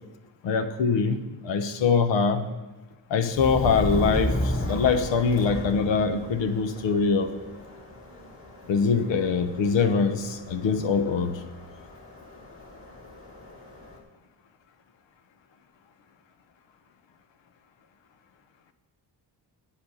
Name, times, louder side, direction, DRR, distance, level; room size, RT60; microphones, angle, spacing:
voice 1, 0.4-2.5 3.1-7.3 8.7-11.4, left 5 dB, 85° left, 9 dB, 1.0 m, -23 dB
Subway metro underground, 3.3-14.0, left 1 dB, 30° left, 2.2 m, -34 dB
10.0 x 8.7 x 5.6 m, 1.2 s
cardioid pair, 110°, 43 cm